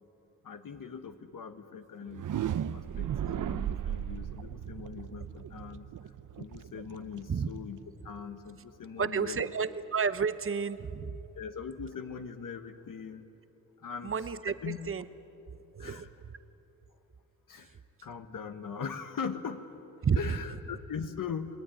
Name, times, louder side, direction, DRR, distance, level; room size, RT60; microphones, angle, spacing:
voice 1, 0.4-2.3 2.7-9.5 11.3-13.2 13.8-14.1 14.5-14.8 15.8-16.1 17.5-17.8 18.0-19.7 20.2-21.6, left 6 dB, 70° left, 7 dB, 1.3 m, -41 dB
sound 1, 2.0-7.9, right 10 dB, 65° right, 0.7 m, -36 dB
voice 2, 9.0-11.2 14.0-14.5 14.9-15.0 15.5-16.1 20.0-20.4, right 6 dB, 40° right, 13 dB, 0.9 m, -31 dB
27.5 x 20.0 x 10.0 m, 3.0 s
wide cardioid pair, 95°, 34 cm